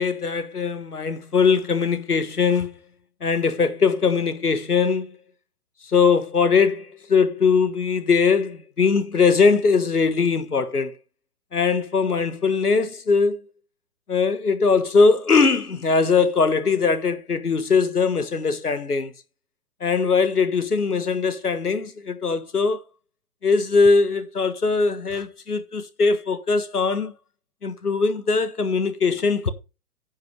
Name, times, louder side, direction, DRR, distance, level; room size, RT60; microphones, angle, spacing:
voice 1, 0.0-2.7 3.2-5.2 5.8-11.0 11.5-13.4 14.1-19.1 19.8-22.8 23.4-27.1 27.6-29.5, left 5 dB, 90° left, 1.4 m, -21 dB
10.5 x 5.8 x 5.0 m
figure-of-eight pair, 125°, 44 cm